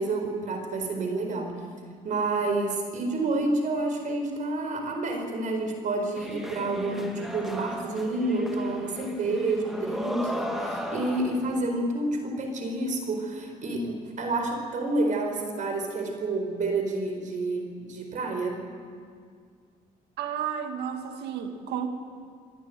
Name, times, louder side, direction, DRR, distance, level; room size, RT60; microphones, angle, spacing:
voice 1, 0.0-1.5 2.0-18.6, right 2 dB, 50° right, 4 dB, 4.4 m, -29 dB
sound 1, 6.1-11.6, equal, ahead, 2.3 m, -35 dB
voice 2, 20.2-21.9, right 8 dB, 80° right, 6 dB, 2.1 m, -32 dB
27.0 x 11.0 x 9.3 m, 2.1 s
cardioid pair, 110°, 17 cm